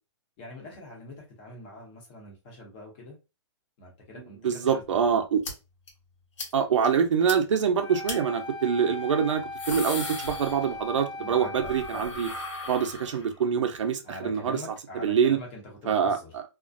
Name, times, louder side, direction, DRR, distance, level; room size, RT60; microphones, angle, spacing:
voice 1, 0.4-3.2 3.8-4.8 11.2-12.1 14.0-16.3, left 2 dB, 25° left, 0.7 m, -44 dB
voice 2, 4.4-5.4 6.5-12.3 12.7-14.6 14.9-15.4 15.9-16.4, right 7 dB, 90° right, 0.6 m, -25 dB
sound 1, 5.4-5.5 5.9-6.0 6.4-6.5 6.8-6.9 7.3-7.4 8.1-8.2 9.3-11.0 11.3-13.4, left 3 dB, 90° left, 1.2 m, -37 dB
Wind instrument woodwind instrument, 7.8-12.9, left 2 dB, 70° left, 0.6 m, -39 dB
2.4 x 2.1 x 2.5 m
hypercardioid pair, 170°, 15 cm